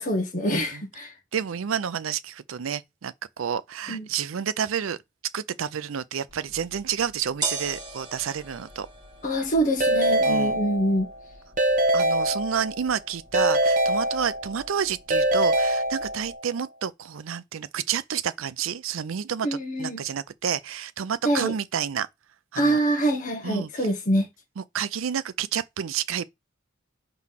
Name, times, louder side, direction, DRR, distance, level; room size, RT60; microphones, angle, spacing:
voice 1, 0.0-1.1 3.9-4.1 9.2-11.1 19.4-20.1 21.2-21.5 22.6-24.3, right 1 dB, 40° left, 1.2 m, -25 dB
voice 2, 1.3-5.0 5.3-8.9 10.2-10.6 11.9-22.1 22.5-22.8 23.4-23.7 24.6-26.2, right 8 dB, 75° right, 0.5 m, -30 dB
sound 1, 6.3-16.3, right 3 dB, 20° right, 2.4 m, -41 dB
Keyboard (musical) / Ringtone, 9.8-11.1 11.6-12.9 13.3-14.7 15.1-16.4, right 1 dB, 40° right, 1.4 m, -23 dB
4.8 x 3.9 x 5.7 m
head